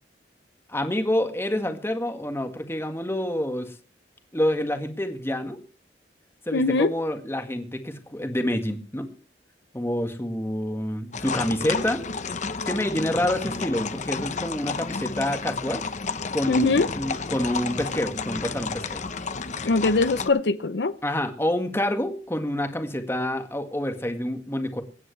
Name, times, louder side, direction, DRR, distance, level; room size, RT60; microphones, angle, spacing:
voice 1, 0.7-3.7 4.3-5.6 6.5-9.1 9.7-12.0 12.7-15.8 16.3-19.0 21.0-24.8, left 1 dB, 15° left, 1.8 m, -27 dB
voice 2, 6.5-6.9 16.5-16.9 19.6-20.9, left 3 dB, 70° left, 0.7 m, -22 dB
sound 1, 11.1-20.3, left 4 dB, 45° left, 0.9 m, -31 dB
25.0 x 9.4 x 3.3 m
head